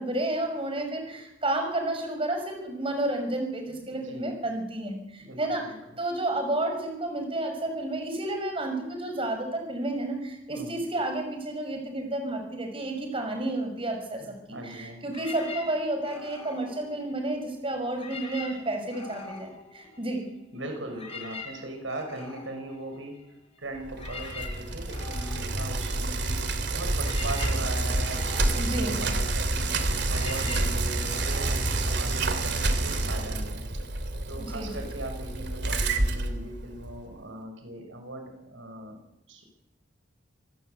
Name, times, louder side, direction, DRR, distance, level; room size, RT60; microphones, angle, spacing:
voice 1, 0.0-5.7 6.0-14.2 14.5-20.2 28.6-29.0 34.4-34.8, right 1 dB, 30° right, 4 dB, 6.1 m, -31 dB
voice 2, 3.8-4.4 5.2-5.7 10.5-10.8 14.2-15.1 20.5-23.1 23.6-26.4 26.7-29.7 30.1-33.6 34.2-39.0 39.3-39.6, right 1 dB, 85° right, 4 dB, 6.3 m, -39 dB
sound 1, 15.1-17.5 17.9-20.4 20.7-32.6, left 4 dB, 30° left, 5.9 m, -44 dB
Bicycle, 23.8-37.0, right 2 dB, 60° right, 3.0 m, -28 dB
27.0 x 19.0 x 8.3 m, 0.90 s
head